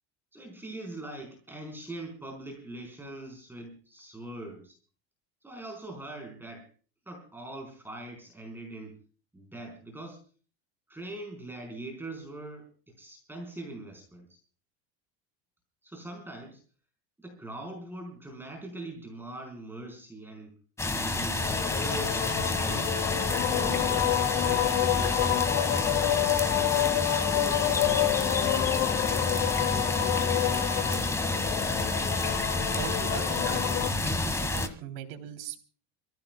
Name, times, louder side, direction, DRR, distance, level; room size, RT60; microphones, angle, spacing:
voice 1, 0.3-4.8 5.4-6.7 7.1-9.0 9.3-10.2 10.9-14.4 15.8-16.6 17.2-20.6 21.0-22.3 22.6-23.0 23.5-25.4 25.7-28.4, right 2 dB, 5° right, 1 dB, 4.4 m, -42 dB
sound 1, 20.8-34.7, left 2 dB, 10° left, 1.5 m, -29 dB
sound 2, 21.4-33.9, left 15 dB, 75° left, 1.0 m, -29 dB
voice 2, 32.8-35.6, right 9 dB, 75° right, 4 dB, 3.3 m, -40 dB
29.5 x 15.5 x 2.3 m, 0.40 s
cardioid pair, 150°, 31 cm